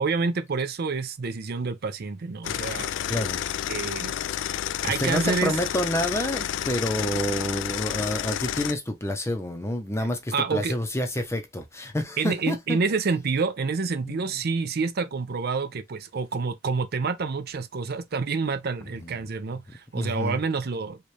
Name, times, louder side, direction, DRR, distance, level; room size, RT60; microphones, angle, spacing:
voice 1, 0.0-2.9 3.7-4.1 4.8-5.5 10.3-10.8 12.2-21.0, right 4 dB, 55° right, 0.5 m, -28 dB
sound 1, 2.4-8.7, left 10 dB, 70° left, 0.3 m, -30 dB
voice 2, 3.1-3.4 4.8-12.8 14.0-14.2 19.0-19.1 19.9-20.4, left 1 dB, 15° left, 0.7 m, -28 dB
4.4 x 2.4 x 3.3 m
head